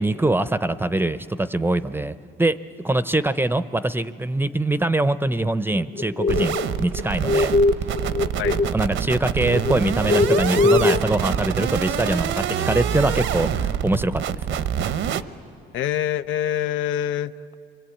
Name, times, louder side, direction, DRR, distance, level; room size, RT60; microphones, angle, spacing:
voice 1, 0.0-2.1 2.4-2.6 2.8-7.6 8.7-14.6, right 2 dB, 10° right, 14 dB, 0.6 m, -23 dB
sound 1, 5.7-8.9 9.1-11.0, left 3 dB, 30° left, 0.6 m, -21 dB
sound 2, 6.3-15.2, right 9 dB, 75° right, 0.8 m, -26 dB
voice 2, 15.7-17.5, left 10 dB, 80° left, 14 dB, 0.6 m, -25 dB
28.5 x 23.0 x 8.5 m, 2.6 s
cardioid pair, 90°, 20 cm